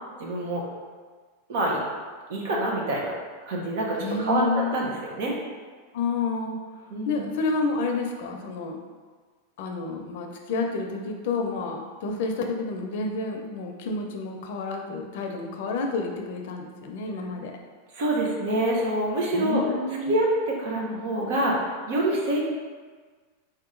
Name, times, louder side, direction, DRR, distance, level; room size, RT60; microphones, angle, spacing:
voice 1, 0.2-0.7 1.5-1.8 2.3-3.1 3.5-5.3 6.9-7.2 17.9-19.6 20.1-22.4, right 1 dB, 65° right, -2 dB, 1.1 m, -26 dB
voice 2, 4.0-4.8 5.9-6.6 7.0-8.8 9.6-17.6 19.3-20.2, left 3 dB, 65° left, 3 dB, 0.6 m, -29 dB
4.3 x 2.9 x 3.8 m, 1.5 s
supercardioid pair, 140°, 0 cm